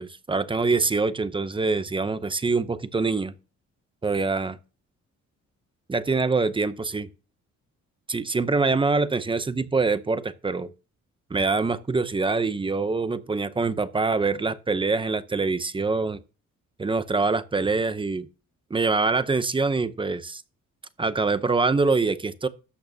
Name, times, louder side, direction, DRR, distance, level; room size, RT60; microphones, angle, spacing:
voice 1, 0.0-3.3 4.0-4.6 5.9-7.1 8.1-10.7 11.3-16.2 16.8-18.3 18.7-20.4 21.0-22.5, right 3 dB, 15° right, 0.6 m, -24 dB
13.0 x 8.5 x 2.7 m
cardioid pair, 140°, 29 cm